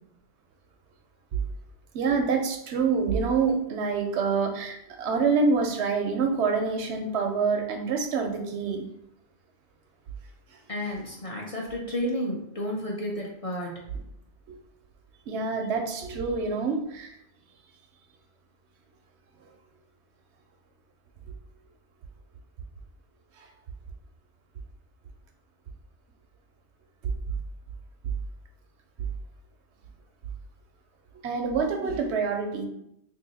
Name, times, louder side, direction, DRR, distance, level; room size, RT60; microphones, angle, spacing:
voice 1, 1.9-8.9 14.5-14.6 15.3-17.1 23.4-23.5 27.0-27.1 31.2-32.7, right 5 dB, 85° right, 4 dB, 0.9 m, -26 dB
voice 2, 10.7-13.8, equal, 40° left, -2 dB, 0.6 m, -31 dB
2.7 x 2.6 x 3.9 m, 0.78 s
omnidirectional pair, 1.1 m